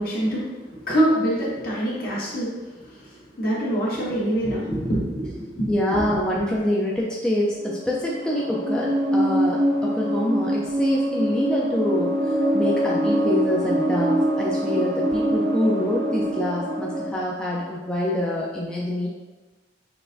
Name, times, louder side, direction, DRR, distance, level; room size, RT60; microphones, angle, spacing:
voice 1, 0.0-6.0, right 1 dB, 55° left, -6 dB, 1.5 m, -25 dB
voice 2, 5.7-19.1, left 1 dB, 5° left, -5 dB, 0.5 m, -25 dB
sound 1, 7.7-17.1, right 1 dB, 50° right, 0.6 m, -24 dB
6.0 x 3.3 x 2.6 m, 1.2 s
head